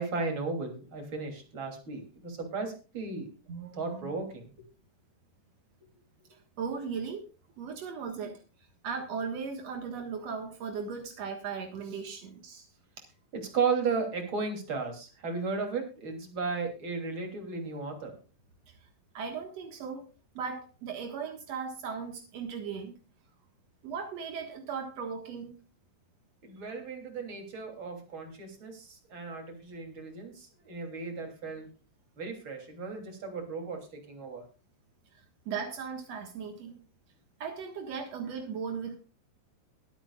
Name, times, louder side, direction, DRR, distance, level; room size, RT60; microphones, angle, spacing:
voice 1, 0.0-3.3 3.7-4.6 13.3-18.2 26.4-31.7 32.2-34.4, right 4 dB, 30° right, 3 dB, 3.1 m, -35 dB
voice 2, 3.5-4.1 6.6-7.2 7.6-8.3 8.8-12.7 19.1-20.1 20.3-22.9 23.8-25.5 35.4-36.8 37.4-38.9, right 6 dB, 70° right, 4 dB, 1.6 m, -37 dB
22.0 x 8.8 x 2.4 m, 0.34 s
omnidirectional pair, 5.4 m